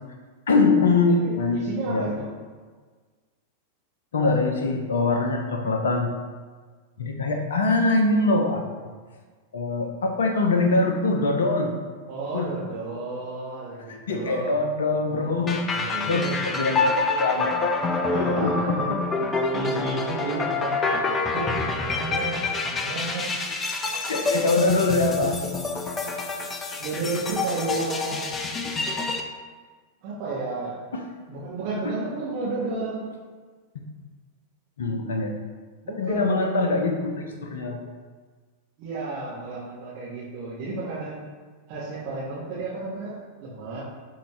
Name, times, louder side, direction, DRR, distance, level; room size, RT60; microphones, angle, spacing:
voice 1, 0.5-1.6 1.9-2.1 4.1-6.1 7.0-8.9 9.5-11.8 12.3-12.5 14.1-15.7 16.0-17.6 18.1-19.0 24.1-25.4 30.9-31.0 34.8-35.3 36.0-37.8, left 3 dB, 65° left, 3 dB, 0.9 m, -23 dB
voice 2, 1.2-2.3 12.1-14.6 15.7-16.4 16.7-17.2 17.8-18.9 19.5-20.7 21.0-23.4 26.8-28.3 30.0-30.8 31.3-33.1 35.8-36.8 38.8-41.2 41.7-43.8, right 3 dB, 45° right, -9 dB, 1.9 m, -32 dB
sound 1, 15.5-29.2, left 3 dB, 20° left, 0.7 m, -27 dB
11.5 x 4.0 x 3.3 m, 1.5 s
figure-of-eight pair, 90°, 0 cm